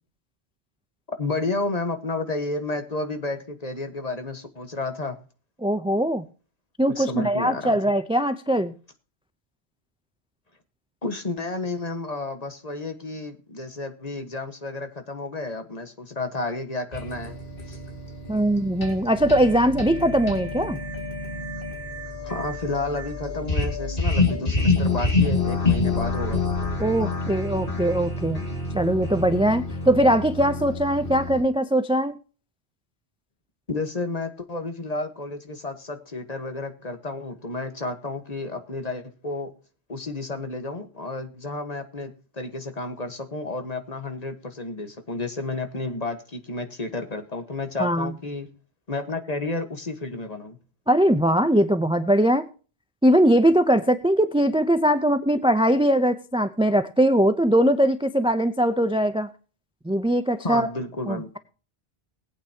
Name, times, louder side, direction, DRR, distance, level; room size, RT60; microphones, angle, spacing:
voice 1, 1.2-5.2 6.9-7.9 11.0-17.4 17.7-17.8 22.2-26.4 33.7-39.5 39.9-48.5 48.9-50.6 60.4-61.3, left 2 dB, 40° left, 7 dB, 1.5 m, -31 dB
voice 2, 5.6-6.2 6.8-8.7 18.3-20.8 26.8-28.4 28.7-32.1 47.8-48.1 50.9-52.5 53.0-59.3 59.8-60.7 61.1-61.4, right 1 dB, 5° right, 11 dB, 0.5 m, -21 dB
sound 1, 16.9-31.4, left 3 dB, 55° left, 2.6 m, -27 dB
19.5 x 8.9 x 2.9 m, 0.37 s
omnidirectional pair, 1.1 m